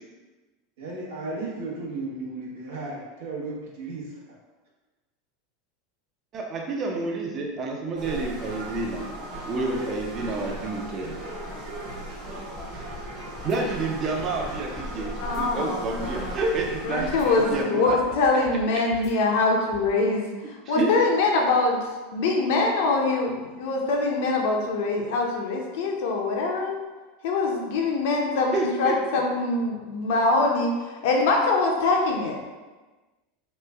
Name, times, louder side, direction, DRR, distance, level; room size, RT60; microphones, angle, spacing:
voice 1, 0.8-4.2, right 2 dB, 80° right, -3 dB, 0.9 m, -34 dB
voice 2, 6.3-9.0 9.5-11.1 13.4-18.0 20.7-20.9 28.5-29.0, right 3 dB, 35° right, 0 dB, 0.5 m, -29 dB
sound 1, 8.0-17.6, right 1 dB, 60° right, 1.1 m, -37 dB
sound 2, 12.6-13.1 13.4-13.6 14.2-14.9 15.2-15.4 16.0-16.8 17.1-17.3 17.9-18.6 18.9-19.1 19.7-19.9, left 3 dB, 35° left, 0.5 m, -45 dB
voice 3, 15.2-16.4 16.8-21.8 22.1-26.8 27.2-32.4, left 3 dB, 75° left, 0 dB, 0.6 m, -24 dB
3.1 x 2.2 x 3.4 m, 1.2 s
supercardioid pair, 130°, 0 cm